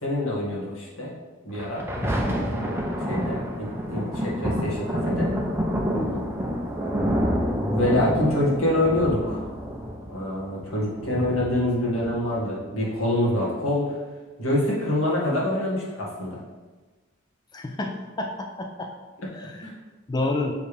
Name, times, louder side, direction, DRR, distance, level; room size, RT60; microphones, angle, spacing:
voice 1, 0.0-1.1 1.4-2.8 3.1-5.3 7.7-9.4 10.1-14.0 14.4-16.4 19.6-19.7, left 1 dB, 85° left, -5 dB, 2.0 m, -26 dB
Thunder, 1.5-12.5 13.2-13.3, equal, 10° right, 0.8 m, -28 dB
voice 2, 5.9-6.2 17.5-18.9 19.3-19.7 20.1-20.5, left 2 dB, 20° left, 3 dB, 0.4 m, -30 dB
6.4 x 5.0 x 3.4 m, 1.2 s
head